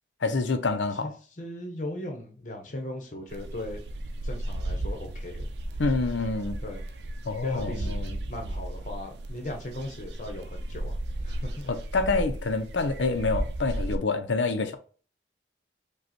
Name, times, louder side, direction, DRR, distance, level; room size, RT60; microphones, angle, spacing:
voice 1, 0.2-1.1 5.8-6.6 7.3-8.2 11.7-14.8, left 3 dB, 90° left, 0.7 m, -27 dB
voice 2, 1.0-3.8 4.2-5.5 6.6-6.8 7.4-11.0 11.2-11.7, left 1 dB, 45° left, 1.0 m, -38 dB
sound 1, 3.3-14.0, right 1 dB, 70° right, 0.5 m, -34 dB
5.2 x 2.4 x 4.3 m
head